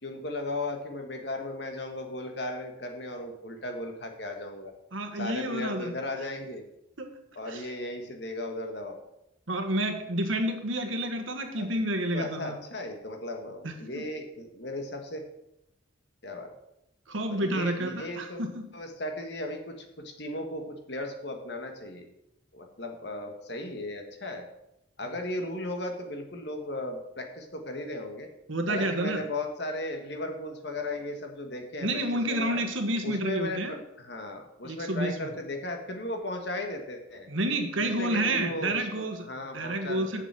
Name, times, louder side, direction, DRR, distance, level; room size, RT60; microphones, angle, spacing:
voice 1, 0.0-4.7 5.1-6.6 7.3-9.0 11.6-11.7 12.1-15.2 16.2-16.5 17.3-18.4 18.7-22.1 22.5-24.5 25.0-28.3 28.7-32.6 33.0-37.3 37.8-40.2, left 1 dB, 60° left, 4 dB, 1.6 m, -36 dB
voice 2, 4.9-5.9 7.0-7.1 7.5-7.6 9.5-12.6 13.6-14.0 17.1-18.6 28.5-29.2 31.8-33.8 34.6-35.3 37.3-39.2 39.5-40.2, right 1 dB, 85° right, 5 dB, 1.5 m, -29 dB
7.0 x 7.0 x 7.4 m, 0.84 s
head